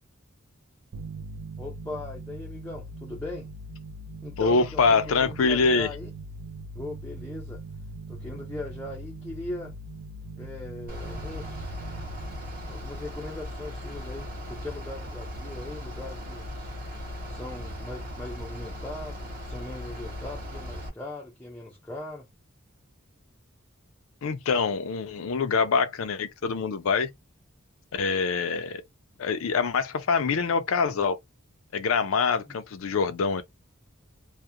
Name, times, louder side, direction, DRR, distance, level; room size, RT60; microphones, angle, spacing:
sound 1, 0.9-14.1, right 2 dB, 85° right, 0.3 m, -41 dB
voice 1, 1.6-3.5 4.2-4.8 5.2-6.1 6.7-7.6 8.1-9.8 10.3-11.7 12.7-16.7 17.2-22.3 32.5-32.6, left 2 dB, 10° left, 0.4 m, -39 dB
voice 2, 4.4-5.9 24.2-27.1 27.9-28.8 29.2-31.2 31.7-33.4, left 5 dB, 70° left, 0.4 m, -25 dB
Bus / Idling, 10.9-20.9, left 1 dB, 40° right, 0.8 m, -38 dB
2.3 x 2.1 x 2.7 m
head